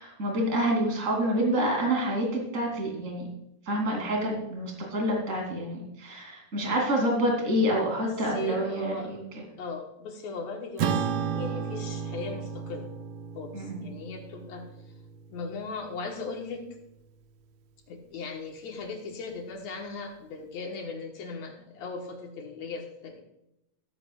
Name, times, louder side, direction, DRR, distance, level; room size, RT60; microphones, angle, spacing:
voice 1, 0.0-3.3 3.7-9.2 13.5-13.8, equal, 25° right, 0 dB, 3.1 m, -27 dB
voice 2, 8.0-9.1 9.6-11.1 11.3-12.9 13.4-14.7 15.3-16.6 17.9-23.2, left 4 dB, 70° left, 2 dB, 2.5 m, -38 dB
Acoustic guitar / Strum, 10.8-15.5, right 7 dB, 70° right, 1.5 m, -33 dB
14.0 x 14.0 x 2.4 m, 0.85 s
omnidirectional pair, 3.4 m